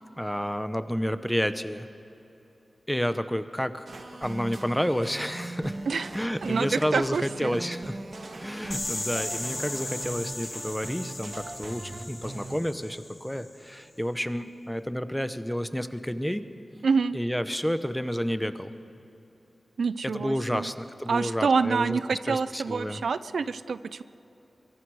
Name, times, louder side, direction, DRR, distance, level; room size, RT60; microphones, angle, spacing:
voice 1, 0.2-1.9 2.9-3.9 4.2-5.8 6.1-8.0 8.4-16.4 17.1-18.7 20.0-23.0, equal, 5° left, 11 dB, 0.8 m, -30 dB
sound 1, 3.9-12.6, right 2 dB, 60° right, 1.8 m, -40 dB
voice 2, 6.4-7.6 16.8-17.2 19.8-20.7 21.1-24.0, right 5 dB, 90° right, 14 dB, 0.5 m, -27 dB
sound 2, 8.7-13.5, left 2 dB, 40° left, 3.6 m, -37 dB
23.0 x 23.0 x 4.9 m, 2.9 s
wide cardioid pair, 85°, 0 cm